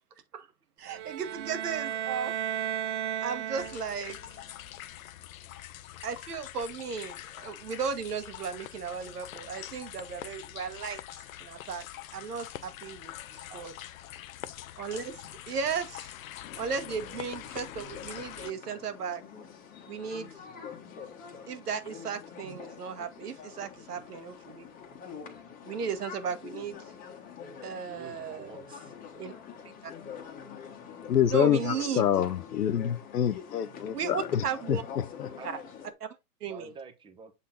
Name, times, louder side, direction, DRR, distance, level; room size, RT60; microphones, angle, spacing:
voice 1, 0.8-2.4 3.2-4.4 6.0-11.9 12.1-13.7 14.7-16.1 16.6-19.2 19.9-20.3 21.5-24.7 25.6-26.8 27.6-28.5 29.2-29.3 29.8-29.9 31.3-32.0 33.9-34.8 35.4-35.6 36.4-36.7, right 6 dB, 80° right, 1.6 m, -35 dB
sound 1, 0.9-4.1, right 9 dB, 50° right, 1.1 m, -34 dB
sound 2, 3.6-18.5, left 13 dB, 60° left, 0.7 m, -44 dB
sound 3, 16.4-35.9, left 7 dB, 20° left, 1.2 m, -45 dB
voice 2, 27.9-28.9 31.6-31.7 35.4-35.6 36.4-37.3, right 6 dB, 10° right, 0.9 m, -48 dB
voice 3, 31.1-35.3, left 9 dB, 85° left, 0.9 m, -27 dB
7.4 x 4.0 x 3.9 m
hypercardioid pair, 135°, 46 cm